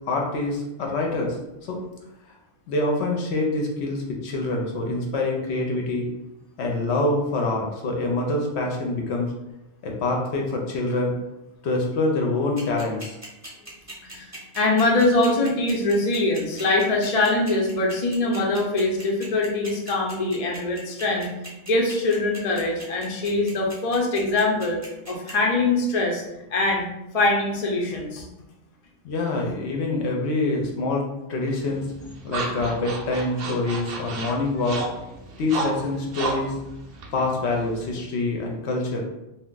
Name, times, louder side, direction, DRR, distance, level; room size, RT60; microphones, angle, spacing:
voice 1, 0.0-1.4 1.7-1.8 2.7-6.1 6.6-9.3 9.8-11.1 11.6-13.2 29.0-31.9 32.2-34.9 35.4-36.5 37.1-39.0, left 2 dB, 65° left, 0 dB, 0.8 m, -25 dB
sound 1, 12.6-25.3, right 1 dB, 15° right, 0.6 m, -40 dB
voice 2, 14.0-21.3 21.6-24.8 25.1-26.2 26.5-26.9 27.1-28.3 33.4-33.5, left 2 dB, 50° left, -1 dB, 0.5 m, -23 dB
sound 2, 31.5-38.0, right 3 dB, 60° right, 0.6 m, -33 dB
2.4 x 2.3 x 3.7 m, 0.94 s
omnidirectional pair, 1.3 m